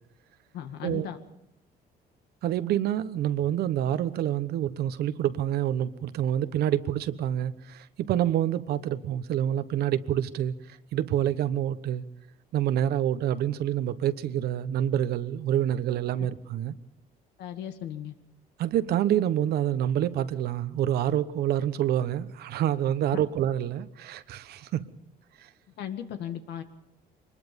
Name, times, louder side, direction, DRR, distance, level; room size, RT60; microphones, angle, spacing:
voice 1, 0.5-1.2 17.4-18.1 23.1-23.2 25.8-26.6, left 10 dB, 80° left, 2.0 m, -36 dB
voice 2, 2.4-10.5 10.9-12.0 12.5-16.7 18.6-24.9, right 11 dB, 70° right, 1.1 m, -27 dB
24.0 x 20.5 x 5.3 m
cardioid pair, 110°, 17 cm